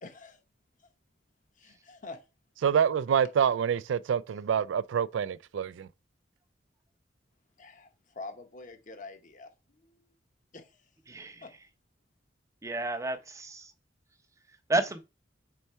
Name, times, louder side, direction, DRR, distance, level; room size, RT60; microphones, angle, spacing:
voice 1, 0.0-0.4 1.6-2.2 7.6-10.1 10.5-10.8 11.4-11.5, left 3 dB, 45° left, 1.0 m, -46 dB
voice 2, 2.6-5.9, right 8 dB, 85° right, 0.3 m, -27 dB
voice 3, 11.1-11.4 12.6-13.7 14.7-15.0, right 2 dB, 15° right, 0.7 m, -31 dB
4.6 x 4.2 x 5.4 m
head